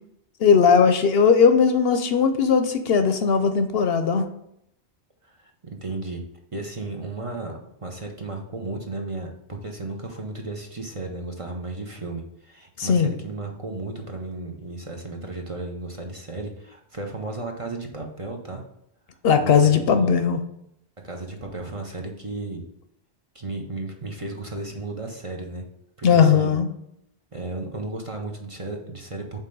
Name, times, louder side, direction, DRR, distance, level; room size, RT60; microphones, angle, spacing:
voice 1, 0.4-4.2 12.8-13.1 19.2-20.4 26.0-26.7, left 6 dB, 65° left, 9 dB, 0.8 m, -18 dB
voice 2, 5.2-6.2 6.5-18.6 19.4-20.1 21.0-22.6 23.3-25.6 26.0-26.6 27.3-29.4, right 2 dB, 35° right, 1 dB, 0.7 m, -34 dB
5.4 x 3.9 x 5.3 m, 0.76 s
omnidirectional pair, 1.1 m